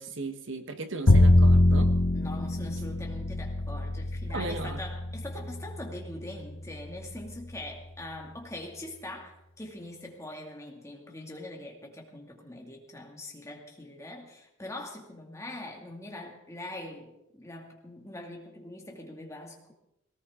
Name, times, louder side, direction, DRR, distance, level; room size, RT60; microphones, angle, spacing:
voice 1, 0.0-1.9 4.3-4.8, right 3 dB, 60° right, 1.1 m, -36 dB
Bowed string instrument, 1.1-7.2, left 1 dB, 70° left, 1.0 m, -24 dB
voice 2, 2.1-19.7, left 1 dB, 15° left, 2.2 m, -42 dB
19.0 x 18.0 x 3.7 m
head